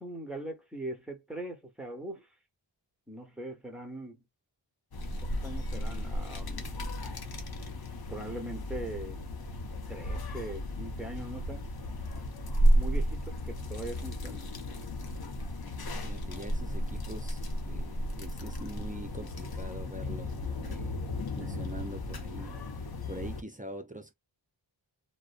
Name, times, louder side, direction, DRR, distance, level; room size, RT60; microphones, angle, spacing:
voice 1, 0.0-2.3 3.1-4.2 5.2-6.9 8.1-9.2 9.9-11.7 12.8-14.5 21.4-21.7, right 1 dB, ahead, 1.0 m, -41 dB
sound 1, 4.9-23.4, equal, 55° left, 0.7 m, -33 dB
voice 2, 15.8-21.0 21.4-24.1, right 1 dB, 20° right, 0.5 m, -44 dB
2.5 x 2.1 x 2.4 m
wide cardioid pair, 85°, 45 cm